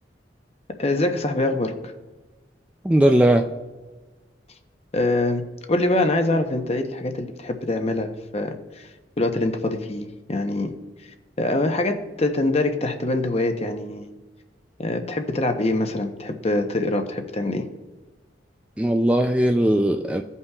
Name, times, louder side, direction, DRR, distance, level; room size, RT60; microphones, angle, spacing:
voice 1, 0.8-1.9 4.9-5.4 5.7-10.7 11.0-14.1 14.8-17.7, left 2 dB, 35° left, 6 dB, 0.8 m, -24 dB
voice 2, 2.8-3.5 18.8-20.2, right 1 dB, 5° right, 4 dB, 0.3 m, -18 dB
16.0 x 5.5 x 2.3 m, 1.3 s
head